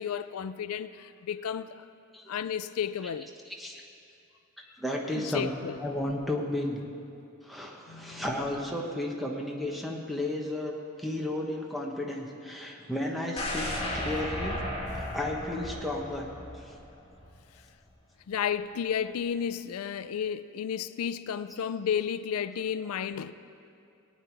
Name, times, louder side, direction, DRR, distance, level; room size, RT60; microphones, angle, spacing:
voice 1, 0.0-1.8 2.3-3.3 5.1-5.8 7.9-8.3 18.3-23.3, left 8 dB, 90° left, 0.4 m, -32 dB
voice 2, 4.8-5.5 5.8-6.8 7.4-14.6 14.9-16.3 16.5-16.7, left 1 dB, ahead, 1.1 m, -33 dB
sound 1, 13.4-17.3 17.7-17.8, left 1 dB, 25° left, 1.7 m, -35 dB
18.5 x 9.1 x 4.6 m
head